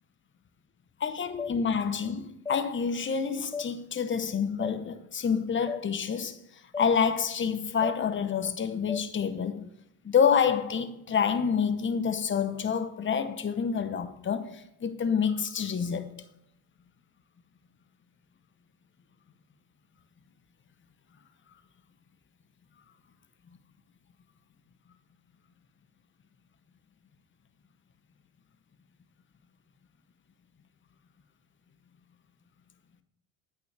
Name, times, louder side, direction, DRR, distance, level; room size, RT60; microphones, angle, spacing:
voice 1, 1.0-6.4 6.8-9.7 10.0-16.1, left 6 dB, 30° left, 0.9 m, -28 dB
sound 1, 1.4-1.5 2.4-2.6 3.5-3.7 4.6-4.7 5.7-5.8 6.7-6.9 7.8-8.0 8.9-9.0, left 5 dB, 10° left, 0.3 m, -34 dB
8.8 x 5.7 x 3.3 m
supercardioid pair, 80°, 38 cm